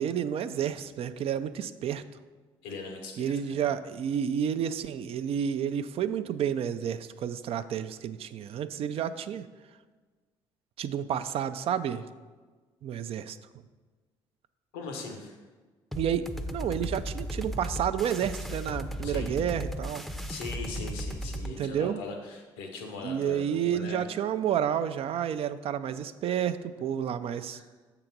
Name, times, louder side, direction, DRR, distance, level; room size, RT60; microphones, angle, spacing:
voice 1, 0.0-2.0 3.2-9.4 10.8-12.0 12.8-13.4 16.0-16.2 16.5-20.0 21.4-22.0 23.0-27.6, right 9 dB, 60° right, 11 dB, 0.4 m, -30 dB
voice 2, 2.6-3.7 14.7-15.4 19.0-19.3 20.3-24.0 27.5-27.6, left 3 dB, 90° left, 2 dB, 1.1 m, -40 dB
sound 1, 15.9-21.5, equal, ahead, 0.6 m, -36 dB
6.8 x 3.8 x 5.9 m, 1.4 s
supercardioid pair, 65°, 11 cm